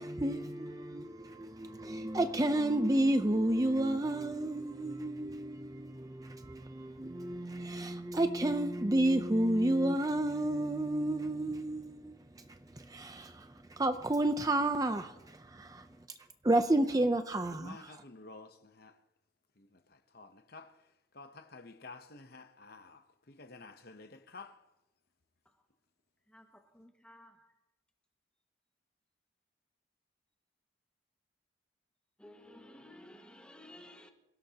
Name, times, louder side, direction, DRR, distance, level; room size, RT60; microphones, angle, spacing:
voice 1, 0.0-15.9 16.4-18.0, right 1 dB, 20° right, 0.6 m, -31 dB
voice 2, 17.5-19.0 19.6-20.8 21.1-24.6, left 3 dB, 50° left, 0.9 m, -52 dB
voice 3, 26.3-27.5 32.2-34.1, left 1 dB, 5° left, 1.7 m, -55 dB
27.5 x 17.0 x 2.9 m
head